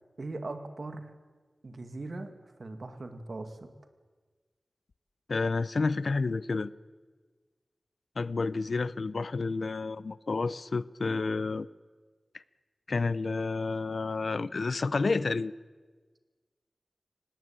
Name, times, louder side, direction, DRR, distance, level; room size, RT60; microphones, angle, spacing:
voice 1, 0.2-1.1 1.6-2.3 2.6-3.7, right 2 dB, 60° right, 7 dB, 2.4 m, -39 dB
voice 2, 5.3-6.7 8.2-11.7 12.9-15.5, left 3 dB, 70° left, 17 dB, 0.7 m, -30 dB
23.5 x 19.5 x 9.0 m, 1.4 s
wide cardioid pair, 90°, 0 cm